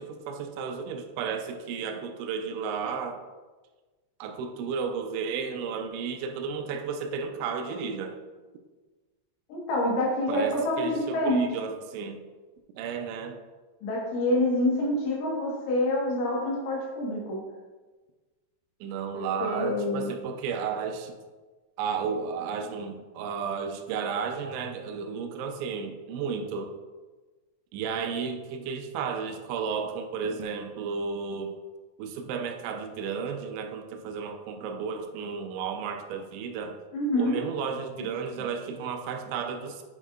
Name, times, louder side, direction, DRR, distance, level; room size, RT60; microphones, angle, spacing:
voice 1, 0.0-3.2 4.2-8.2 10.3-12.2 12.8-13.4 18.8-21.2 21.8-26.7 27.7-31.6 32.0-36.8 37.2-39.8, right 6 dB, 85° right, 5 dB, 3.0 m, -33 dB
voice 2, 9.5-11.5 13.8-17.4 19.1-20.1 36.9-37.4, left 1 dB, 90° left, -3 dB, 3.9 m, -27 dB
9.0 x 5.4 x 2.4 m, 1.3 s
omnidirectional pair, 5.3 m